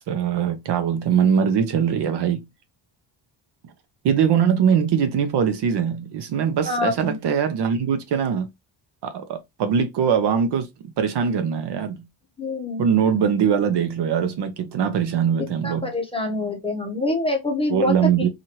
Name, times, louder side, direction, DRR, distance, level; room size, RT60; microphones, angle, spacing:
voice 1, 0.0-2.4 4.0-8.5 9.0-10.7 11.0-12.0 12.8-15.9 17.7-18.3, right 7 dB, 60° right, 0.7 m, -22 dB
voice 2, 6.6-7.2 12.4-12.9 15.4-18.3, left 2 dB, 10° left, 0.7 m, -26 dB
2.8 x 2.5 x 2.9 m
cardioid pair, 140°, 47 cm